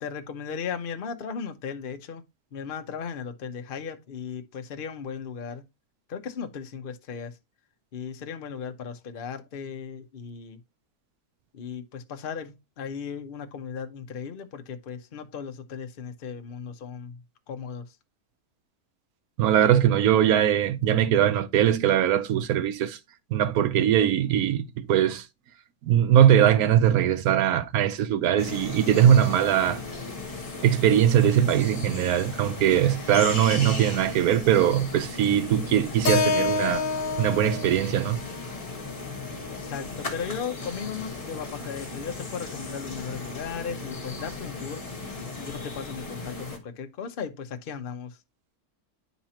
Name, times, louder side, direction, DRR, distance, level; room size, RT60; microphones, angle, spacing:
voice 1, 0.0-2.2 2.5-5.6 6.1-7.4 7.9-10.6 11.5-18.0 39.5-44.8 45.4-48.2, left 6 dB, 45° left, 0.8 m, -36 dB
voice 2, 19.4-23.0 23.3-25.3 25.8-29.8 30.6-36.9 37.2-38.2, right 10 dB, 80° right, 1.1 m, -21 dB
sound 1, 28.4-46.6, left 3 dB, 25° left, 1.3 m, -37 dB
Keyboard (musical), 36.0-40.3, left 4 dB, 70° left, 1.3 m, -29 dB
10.0 x 4.1 x 2.8 m
omnidirectional pair, 1.5 m